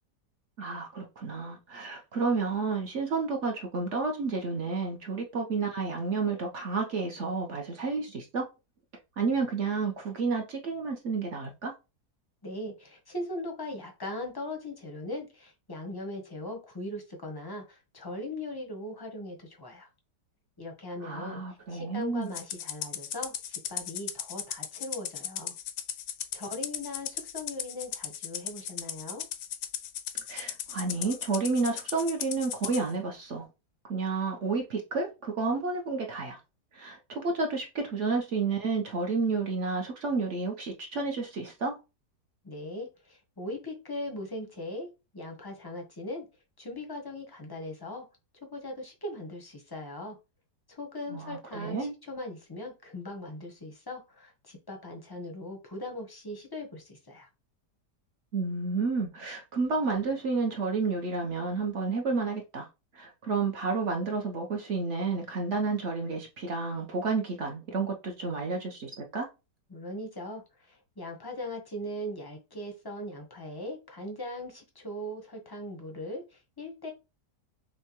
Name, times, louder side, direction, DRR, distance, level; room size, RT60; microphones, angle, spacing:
voice 1, 0.6-8.5 9.2-11.7 21.0-22.3 30.3-33.5 33.9-36.4 36.7-41.8 51.1-51.9 58.3-62.7 62.9-69.3, right 4 dB, 55° right, 0.9 m, -31 dB
voice 2, 12.4-19.9 20.6-21.4 21.7-25.6 26.3-29.3 42.4-46.3 46.6-48.1 48.4-50.2 50.7-57.3 69.7-76.9, left 1 dB, 25° left, 0.5 m, -39 dB
Rattle (instrument), 22.3-32.8, left 10 dB, 70° left, 1.0 m, -37 dB
6.4 x 2.1 x 2.9 m
omnidirectional pair, 1.8 m